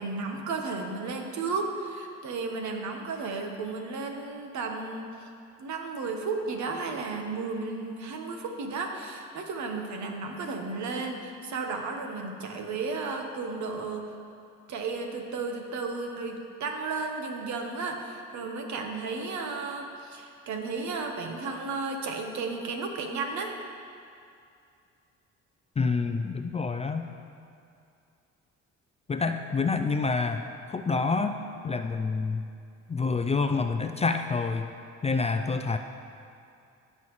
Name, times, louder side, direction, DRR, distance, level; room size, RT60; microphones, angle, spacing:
voice 1, 0.0-5.1 5.6-14.0 14.7-23.5, right 4 dB, 70° right, 3 dB, 1.1 m, -33 dB
voice 2, 25.8-27.0 29.1-32.4 32.9-34.7 35.0-35.8, left 4 dB, 20° left, 7 dB, 0.4 m, -27 dB
15.5 x 5.6 x 3.1 m, 2.5 s
cardioid pair, 90°, 30 cm